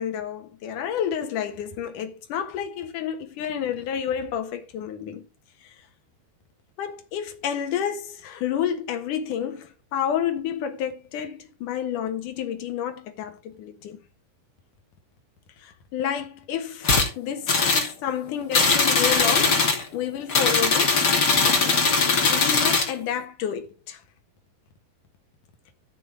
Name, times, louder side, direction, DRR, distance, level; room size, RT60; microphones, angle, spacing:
voice 1, 0.0-5.3 6.8-14.0 15.6-21.2 21.5-21.8 22.3-24.0, left 9 dB, 60° left, 2.6 m, -30 dB
sound 1, 16.8-17.1 17.5-17.9 18.5-19.8 20.3-22.9, left 4 dB, 30° left, 2.3 m, -20 dB
13.0 x 6.5 x 4.8 m
omnidirectional pair, 4.7 m